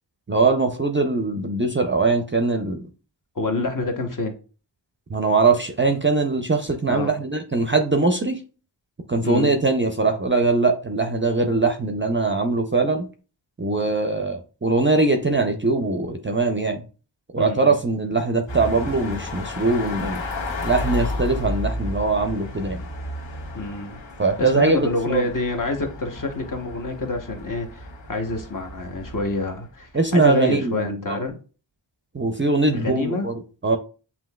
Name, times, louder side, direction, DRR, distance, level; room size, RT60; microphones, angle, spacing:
voice 1, 0.3-2.9 5.1-8.4 9.1-13.1 13.6-16.8 17.3-20.2 20.6-22.8 24.2-25.2 29.9-31.2 32.1-33.8, right 3 dB, 25° right, 0.5 m, -21 dB
voice 2, 3.3-4.3 6.9-7.1 9.2-9.5 17.4-17.8 23.5-24.0 24.4-31.3 32.7-33.3, left 3 dB, 40° left, 1.0 m, -27 dB
sound 1, 18.5-29.9, left 1 dB, 70° left, 1.8 m, -33 dB
7.4 x 2.8 x 2.2 m
wide cardioid pair, 75°, 47 cm